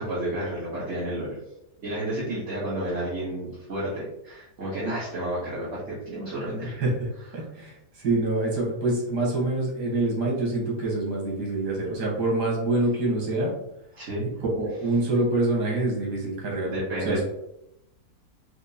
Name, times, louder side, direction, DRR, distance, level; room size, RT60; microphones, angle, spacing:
voice 1, 0.0-1.4 1.8-5.8 6.0-6.7 13.9-14.3 16.6-17.2, right 1 dB, 45° right, -9 dB, 1.3 m, -31 dB
voice 2, 6.6-13.5 14.6-16.7 17.0-17.2, right 2 dB, 85° right, -2 dB, 1.7 m, -26 dB
4.6 x 2.0 x 2.6 m, 0.82 s
omnidirectional pair, 1.7 m